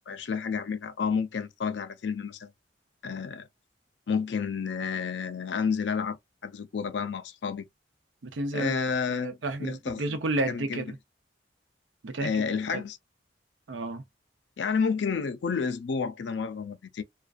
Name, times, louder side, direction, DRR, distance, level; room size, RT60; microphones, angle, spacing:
voice 1, 0.1-2.5 3.0-3.5 4.1-6.2 6.4-7.7 8.5-10.0 10.5-10.8 12.2-13.0 14.6-17.0, left 5 dB, 75° left, 0.4 m, -30 dB
voice 2, 8.2-8.8 9.1-11.0 12.0-12.4 12.7-12.8 13.7-14.0, right 2 dB, 90° right, 0.6 m, -31 dB
2.4 x 2.1 x 2.4 m
head